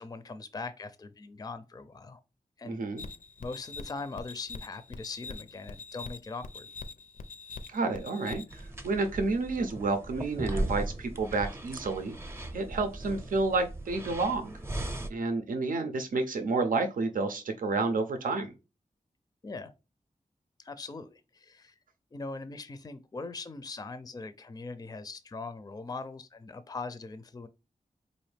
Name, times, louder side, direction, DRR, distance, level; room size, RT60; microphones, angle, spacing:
voice 1, 0.0-2.2 2.6-2.8 3.4-6.7 19.4-19.7 20.6-21.8 22.1-27.5, left 3 dB, 30° left, 0.4 m, -41 dB
voice 2, 2.6-3.0 7.7-12.1 12.5-14.5 15.1-18.5, right 3 dB, 90° right, 0.6 m, -30 dB
sound 1, 3.0-8.7, left 3 dB, 80° left, 0.5 m, -44 dB
sound 2, 8.5-15.1, right 1 dB, 20° right, 0.6 m, -37 dB
4.0 x 2.6 x 3.2 m
wide cardioid pair, 90°, 14 cm